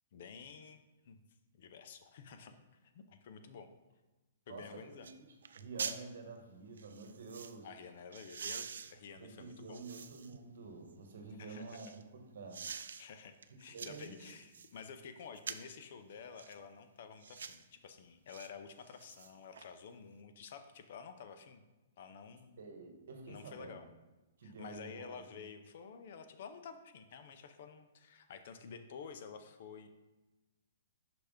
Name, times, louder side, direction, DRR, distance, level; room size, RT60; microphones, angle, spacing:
voice 1, 0.1-0.8 1.0-1.2 1.5-2.5 2.8-3.7 4.5-5.1 7.6-9.8 11.4-11.8 13.0-21.6 22.0-22.6 23.3-23.9 24.4-29.9, left 6 dB, 55° left, 8 dB, 0.6 m, -51 dB
voice 2, 4.5-5.1 5.5-7.7 9.2-12.6 13.7-14.3 22.6-23.8 24.4-25.5, right 4 dB, 70° right, 3 dB, 1.2 m, -49 dB
sound 1, 4.5-4.6 5.0-5.2 5.4-6.0 6.8-7.6 8.1-10.4 10.9-12.0 12.5-13.0 13.4-14.7 15.4-15.8 16.4-16.6 17.2-17.6 18.3-18.5 18.8-19.7 20.0-20.1, right 6 dB, 85° right, 0.3 m, -46 dB
5.9 x 3.4 x 5.0 m, 1.1 s
hypercardioid pair, 160°, 0 cm